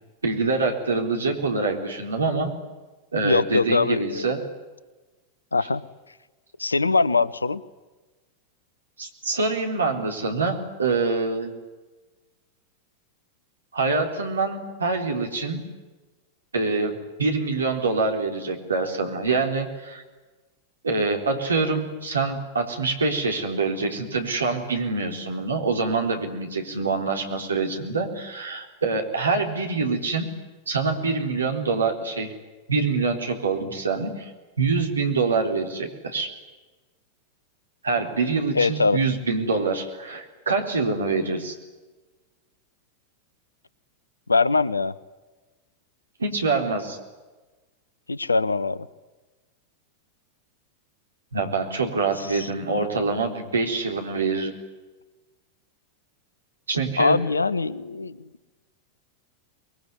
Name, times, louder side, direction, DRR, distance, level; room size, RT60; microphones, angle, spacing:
voice 1, 0.2-2.5 3.1-4.4 9.0-11.5 13.7-15.6 16.5-16.9 17.2-20.0 20.8-30.3 30.7-32.3 32.7-34.3 34.6-36.3 37.8-41.6 46.2-47.0 51.3-54.5 56.7-57.2, right 4 dB, 75° right, 3 dB, 4.0 m, -25 dB
voice 2, 3.2-4.5 5.5-5.8 6.6-7.6 38.5-39.0 44.3-44.9 48.1-48.9 52.2-52.5 57.0-58.3, left 3 dB, 80° left, 20 dB, 0.9 m, -22 dB
24.0 x 22.0 x 9.8 m, 1.2 s
figure-of-eight pair, 90°, 0 cm